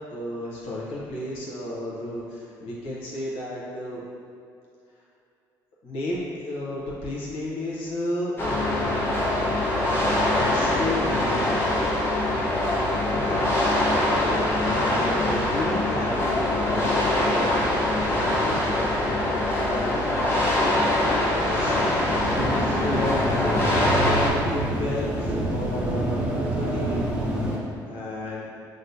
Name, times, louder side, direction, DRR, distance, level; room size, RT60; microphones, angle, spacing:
voice 1, 0.1-4.0 5.8-9.1 10.3-11.4 13.1-13.8 14.6-22.1 22.6-26.3 26.5-28.4, left 1 dB, 70° left, -6 dB, 1.0 m, -33 dB
sound 1, 8.4-24.3, left 1 dB, 25° left, 1.0 m, -23 dB
sound 2, 22.2-27.6, right 1 dB, 10° right, 1.0 m, -27 dB
6.2 x 2.1 x 2.7 m, 2.5 s
supercardioid pair, 70°, 10 cm